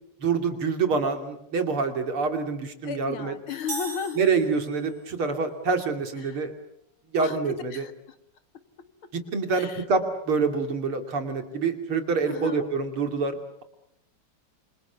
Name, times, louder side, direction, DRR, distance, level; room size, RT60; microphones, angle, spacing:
voice 1, 0.2-3.3 4.2-6.5 7.1-7.8 9.1-13.6, right 4 dB, 75° right, 6 dB, 3.7 m, -26 dB
voice 2, 2.8-4.2 6.2-6.5 7.2-8.2 9.5-9.8 12.3-12.6, left 7 dB, 70° left, 10 dB, 2.6 m, -35 dB
sound 1, 3.7-5.1, right 3 dB, 40° right, 7.2 m, -37 dB
28.5 x 27.0 x 7.1 m, 0.73 s
omnidirectional pair, 2.4 m